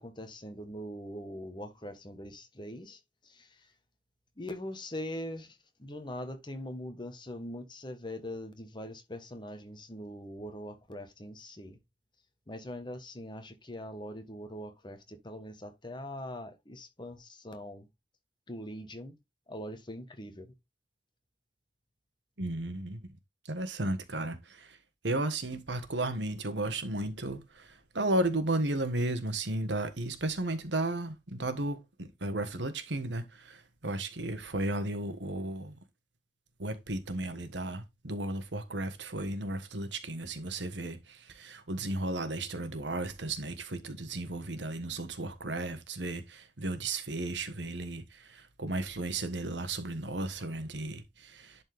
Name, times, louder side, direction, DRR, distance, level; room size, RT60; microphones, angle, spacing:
voice 1, 0.0-3.7 4.4-11.8 12.5-17.9 18.5-19.2 19.5-20.5, left 1 dB, 25° left, 1.4 m, -42 dB
voice 2, 22.4-23.1 23.5-24.8 25.0-35.8 36.6-51.6, right 2 dB, 90° right, 1.5 m, -34 dB
11.0 x 4.4 x 3.5 m
head